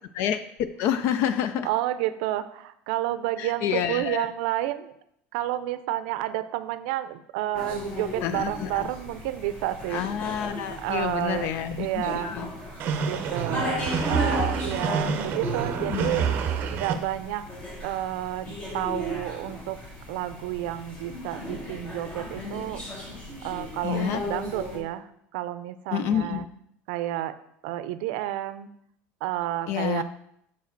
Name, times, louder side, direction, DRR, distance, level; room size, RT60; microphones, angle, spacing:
voice 1, 0.8-1.7 3.4-4.3 8.2-8.8 9.9-12.5 15.9-16.1 23.8-24.2 25.9-26.4 29.7-30.0, left 9 dB, 55° left, 12 dB, 0.4 m, -28 dB
voice 2, 1.6-4.9 5.3-10.0 10.8-11.5 11.8-12.8 13.1-16.3 16.7-17.4 17.8-19.8 20.1-22.8 23.4-26.5 26.9-27.3 27.6-28.7 29.2-30.0, right 14 dB, 80° right, 13 dB, 0.5 m, -30 dB
sound 1, 7.5-24.8, left 1 dB, 25° left, 1.6 m, -36 dB
sound 2, 12.8-16.9, right 6 dB, 40° right, 0.7 m, -28 dB
7.1 x 4.8 x 4.5 m, 0.73 s
cardioid pair, 165°, 5 cm